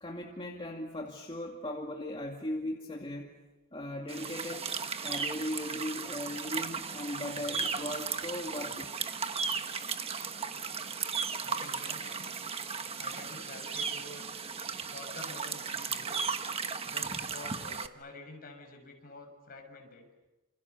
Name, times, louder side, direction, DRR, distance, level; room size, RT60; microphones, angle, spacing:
voice 1, 0.0-3.3 3.7-4.7 5.0-8.9 16.8-16.9, left 1 dB, 25° left, 0 dB, 2.4 m, -38 dB
sound 1, 4.1-17.9, right 5 dB, 30° right, 1.3 m, -36 dB
voice 2, 11.4-12.3 13.0-14.4 14.8-16.3 16.8-20.1, left 2 dB, 45° left, 3 dB, 6.8 m, -49 dB
29.0 x 28.5 x 6.9 m, 1.1 s
head